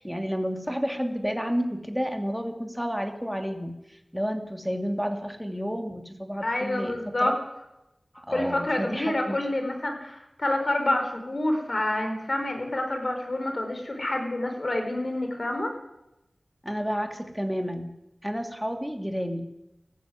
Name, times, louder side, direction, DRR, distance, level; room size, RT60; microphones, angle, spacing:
voice 1, 0.0-7.3 8.1-9.4 16.6-17.9 18.2-19.5, equal, ahead, 5 dB, 2.6 m, -31 dB
voice 2, 6.4-7.3 8.3-15.7, left 1 dB, 50° left, 4 dB, 4.8 m, -28 dB
18.5 x 14.5 x 9.5 m, 0.93 s
wide cardioid pair, 65°, 0 cm